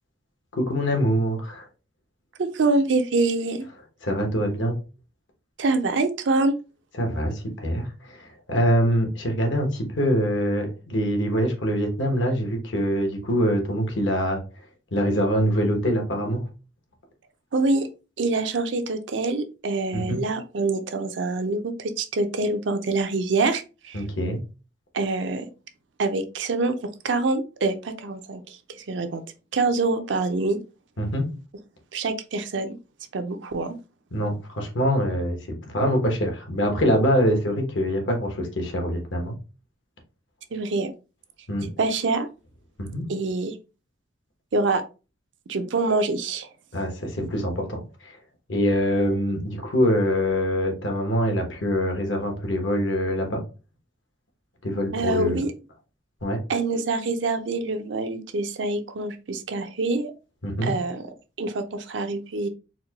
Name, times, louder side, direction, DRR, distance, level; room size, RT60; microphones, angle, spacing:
voice 1, 0.5-1.6 4.0-4.7 7.0-14.4 14.9-16.4 19.9-20.2 23.9-24.4 31.0-31.3 34.1-39.4 41.5-41.7 42.8-43.1 46.7-48.2 48.5-53.4 54.6-55.4 56.2-56.4 60.4-60.7, equal, 80° left, 3 dB, 1.1 m, -24 dB
voice 2, 2.4-3.7 5.6-6.5 17.5-17.9 18.2-24.0 24.9-25.5 26.0-26.7 27.0-29.2 29.5-30.6 31.9-32.8 33.1-33.7 40.5-40.9 41.6-42.3 43.1-43.5 44.5-44.8 45.5-46.5 54.9-55.5 56.5-60.1 60.6-61.1 61.4-62.5, right 3 dB, 70° right, 7 dB, 0.5 m, -25 dB
4.2 x 2.2 x 2.8 m, 0.32 s
head